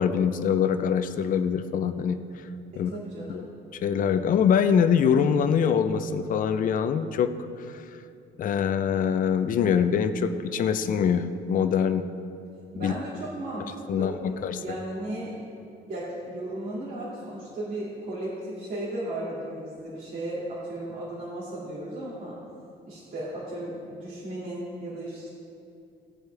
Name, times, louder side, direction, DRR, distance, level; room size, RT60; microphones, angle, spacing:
voice 1, 0.0-2.2 2.8-2.9 3.3-3.5 3.8-7.3 8.4-12.0 12.8-12.9 13.9-14.6, left 7 dB, 50° left, 9 dB, 0.6 m, -24 dB
voice 2, 2.9-3.5 12.7-15.5 15.9-22.3 22.8-25.3, right 1 dB, 50° right, -8 dB, 2.4 m, -35 dB
17.0 x 8.1 x 3.4 m, 2.6 s
cardioid pair, 145°, 18 cm